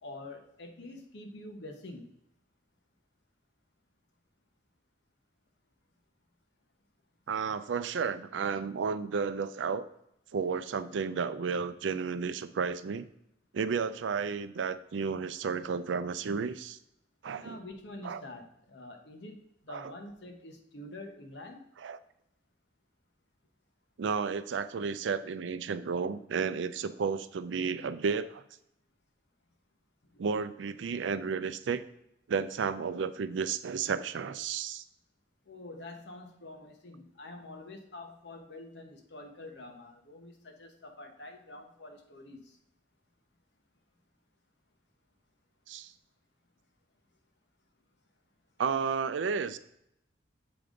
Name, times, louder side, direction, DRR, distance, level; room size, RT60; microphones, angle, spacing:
voice 1, 0.0-2.1 17.4-21.6 30.1-30.2 35.5-42.6, left 2 dB, 75° left, 4 dB, 1.0 m, -47 dB
voice 2, 7.3-9.8 10.3-13.0 13.5-16.8 17.2-17.6 18.0-18.2 19.7-19.9 21.8-22.0 24.0-28.4 30.2-31.8 32.3-34.8 45.7-45.9 48.6-49.6, right 5 dB, 85° right, 13 dB, 0.4 m, -32 dB
6.9 x 5.1 x 3.7 m, 0.80 s
head